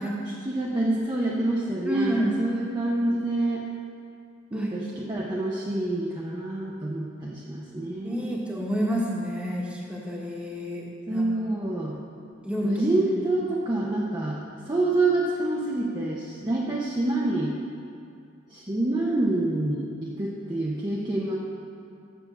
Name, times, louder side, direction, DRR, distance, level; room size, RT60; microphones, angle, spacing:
voice 1, 0.0-3.6 4.5-8.3 11.1-12.0 12.6-17.5 18.5-21.4, right 2 dB, 20° right, -4 dB, 0.7 m, -27 dB
voice 2, 1.8-2.4 4.5-4.9 8.0-11.2 12.4-13.2, equal, 5° right, -3 dB, 1.2 m, -29 dB
7.0 x 6.8 x 7.1 m, 2.5 s
head